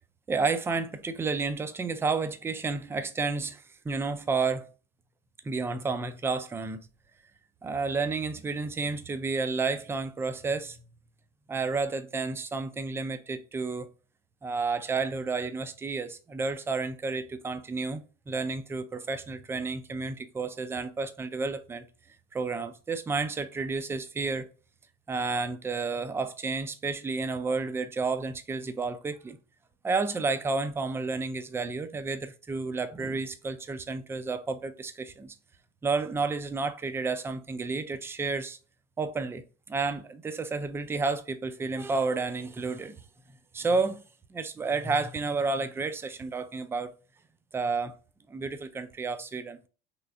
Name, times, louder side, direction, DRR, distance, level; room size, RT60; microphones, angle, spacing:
voice 1, 0.3-4.7 5.4-6.9 7.6-10.8 11.5-13.9 14.4-21.8 22.3-24.5 25.1-29.4 29.8-35.4 35.8-38.6 39.0-43.0 43.5-44.0 44.3-46.9 47.5-47.9 48.3-49.6, right 4 dB, 10° right, 0.3 m, -31 dB
3.2 x 3.1 x 2.4 m
figure-of-eight pair, 65°, 30 cm